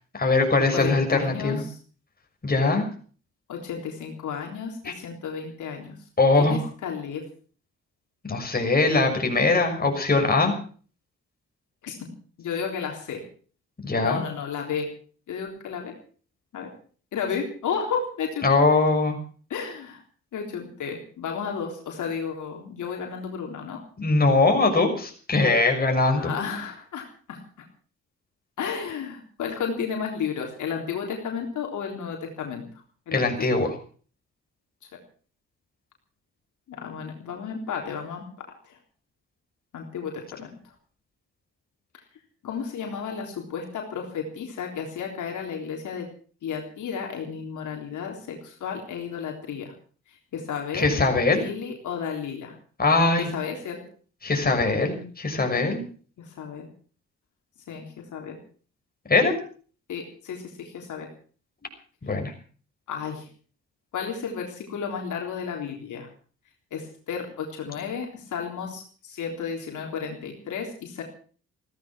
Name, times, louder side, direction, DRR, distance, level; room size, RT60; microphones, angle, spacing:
voice 1, 0.1-1.6 2.4-2.9 4.8-4.9 6.2-6.6 8.2-10.5 13.8-14.2 18.4-19.2 24.0-26.3 33.1-33.7 50.7-51.4 52.8-53.3 54.2-55.8 59.1-59.3 62.0-62.3, left 3 dB, 30° left, 3 dB, 6.3 m, -21 dB
voice 2, 0.7-1.7 3.5-5.9 6.4-7.2 11.8-12.1 12.4-13.2 14.0-14.9 15.3-15.9 16.5-16.7 17.1-18.4 19.5-20.0 20.3-23.8 26.1-27.7 28.6-32.6 33.1-33.5 36.7-38.8 39.7-40.5 42.4-46.1 46.4-49.7 50.3-50.9 51.3-52.5 53.2-53.8 56.2-56.7 57.7-57.9 58.1-58.4 59.9-61.1 62.9-63.3 63.9-66.1 66.7-71.0, left 6 dB, 75° left, 1 dB, 3.8 m, -33 dB
16.0 x 14.5 x 6.2 m, 0.43 s
cardioid pair, 70°, 30 cm